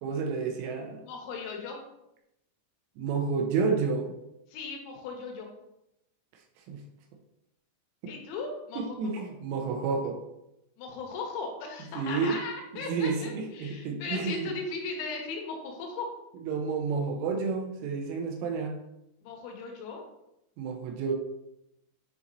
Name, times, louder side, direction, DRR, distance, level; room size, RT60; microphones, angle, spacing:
voice 1, 0.0-1.0 3.0-4.1 6.7-6.8 8.0-8.1 8.8-10.2 11.9-12.4 12.7-14.5 16.4-18.8 20.6-21.1, right 5 dB, 80° right, 2 dB, 3.0 m, -30 dB
voice 2, 1.0-1.8 4.5-5.5 8.1-9.3 10.8-16.1 19.2-20.0, left 4 dB, 85° left, 1 dB, 3.6 m, -37 dB
9.7 x 4.2 x 2.6 m, 0.87 s
omnidirectional pair, 6.0 m